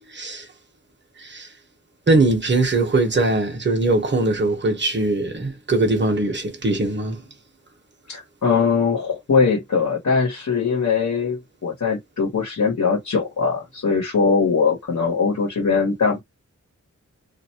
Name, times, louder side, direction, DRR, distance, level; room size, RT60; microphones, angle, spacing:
voice 1, 0.1-0.5 1.2-1.5 2.1-7.2, right 2 dB, 40° right, 1.0 m, -21 dB
voice 2, 8.1-16.2, left 5 dB, 70° left, 1.1 m, -21 dB
2.5 x 2.1 x 2.8 m
cardioid pair, 55°, 29 cm